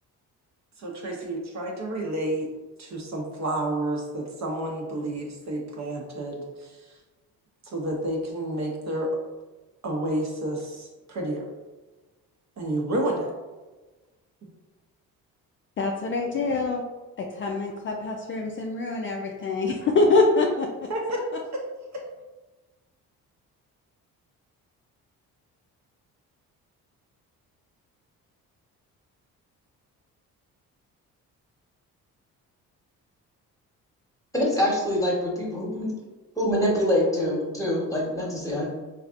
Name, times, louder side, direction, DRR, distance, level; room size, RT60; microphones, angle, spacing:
voice 1, 0.8-2.5 2.8-6.8 7.6-9.2 9.8-11.5 12.6-13.3 20.9-21.2 21.5-21.7 21.9-22.0, right 1 dB, 50° right, 0 dB, 0.7 m, -30 dB
voice 2, 15.8-16.8 17.3-20.7, left 3 dB, 35° left, 0 dB, 0.4 m, -24 dB
voice 3, 34.3-35.9 36.4-38.7, left 1 dB, 10° left, -3 dB, 1.1 m, -25 dB
3.2 x 2.4 x 2.4 m, 1.2 s
supercardioid pair, 65°, 37 cm